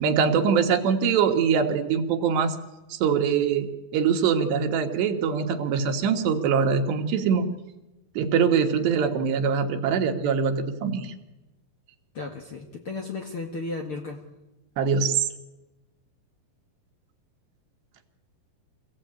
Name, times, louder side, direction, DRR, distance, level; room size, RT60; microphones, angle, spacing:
voice 1, 0.0-2.6 2.9-7.5 8.2-11.1 14.8-15.3, right 6 dB, 85° right, 4 dB, 3.7 m, -23 dB
voice 2, 12.1-14.2, left 3 dB, 50° left, 2 dB, 1.8 m, -34 dB
25.5 x 16.5 x 8.9 m, 1.1 s
omnidirectional pair, 4.8 m